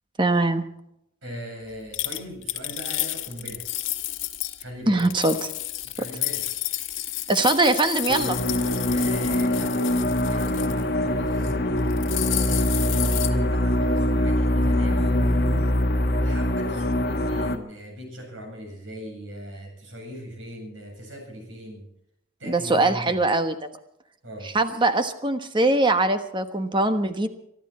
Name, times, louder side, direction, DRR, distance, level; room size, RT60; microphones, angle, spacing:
voice 1, 0.2-0.7 4.9-5.5 7.3-8.4 14.8-15.7 22.5-23.6 24.5-27.3, right 2 dB, 25° right, 8 dB, 1.2 m, -22 dB
voice 2, 1.2-3.7 4.6-5.3 5.8-6.8 8.9-9.9 10.3-15.4 16.2-21.9 22.4-23.2 24.2-24.5, equal, 80° right, 2 dB, 7.7 m, -39 dB
sound 1, 1.9-4.6 5.0-10.8 11.3-11.5 11.8-13.3, left 15 dB, 80° left, 1.4 m, -31 dB
sound 2, 8.1-17.6, left 1 dB, 55° left, 1.5 m, -23 dB
24.0 x 12.0 x 4.4 m, 0.79 s
head